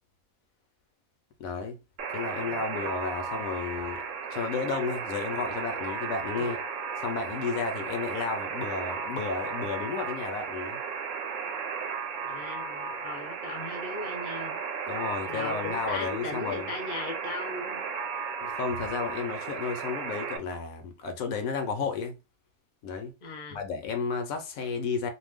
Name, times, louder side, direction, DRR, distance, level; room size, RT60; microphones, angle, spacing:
voice 1, 1.4-1.8 2.1-4.0 4.3-6.6 7.0-10.8 14.9-16.7 18.4-22.1 22.8-23.1 23.5-25.1, left 5 dB, 75° left, 1.0 m, -32 dB
Alarm, 2.0-20.4, right 5 dB, 65° right, 0.8 m, -35 dB
voice 2, 12.3-14.6 15.2-17.9 23.2-23.6, left 3 dB, 40° left, 0.6 m, -38 dB
2.6 x 2.1 x 3.4 m
omnidirectional pair, 1.5 m